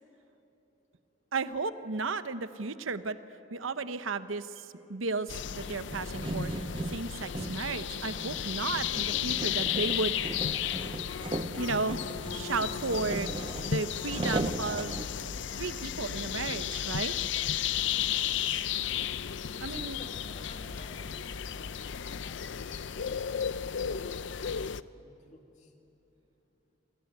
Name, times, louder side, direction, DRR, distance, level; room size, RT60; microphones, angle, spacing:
voice 1, 1.3-3.2 3.5-10.6 11.6-12.0 12.3-13.3 13.6-17.1 19.6-20.0, right 3 dB, 85° right, 11 dB, 0.9 m, -34 dB
sound 1, 5.3-24.8, left 9 dB, 65° left, 0.5 m, -34 dB
sound 2, 5.9-15.1, right 2 dB, 25° right, 0.6 m, -38 dB
voice 2, 19.0-25.7, left 1 dB, 35° left, 2 dB, 2.4 m, -54 dB
28.5 x 22.0 x 9.4 m, 3.0 s
head